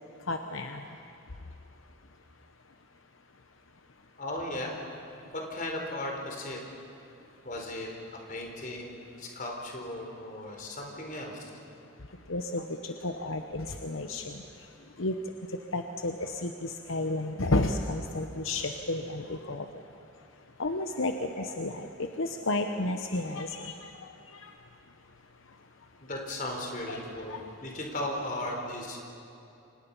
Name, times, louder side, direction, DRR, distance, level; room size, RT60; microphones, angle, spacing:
voice 1, 0.3-0.8 12.3-14.4 15.0-15.1 15.7-19.6 20.6-21.9 22.2-23.9 24.4-24.5 26.9-27.0 27.3-27.4, left 2 dB, 70° left, 6 dB, 1.0 m, -32 dB
voice 2, 4.2-6.6 7.4-11.5 20.9-21.0 21.3-21.5 26.0-29.0, left 1 dB, 40° left, 1 dB, 4.3 m, -37 dB
30.0 x 25.5 x 5.6 m, 2.8 s
head